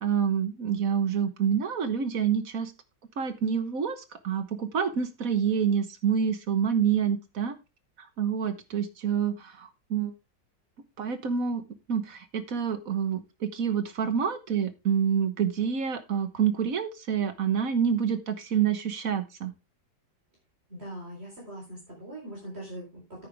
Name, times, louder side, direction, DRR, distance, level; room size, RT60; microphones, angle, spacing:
voice 1, 0.0-2.7 3.2-7.6 8.0-10.1 11.0-11.6 11.9-19.5, right 7 dB, 55° right, 10 dB, 1.5 m, -27 dB
voice 2, 20.7-23.3, right 1 dB, 35° right, -4 dB, 4.5 m, -41 dB
9.9 x 9.2 x 3.4 m, 0.26 s
omnidirectional pair, 1.8 m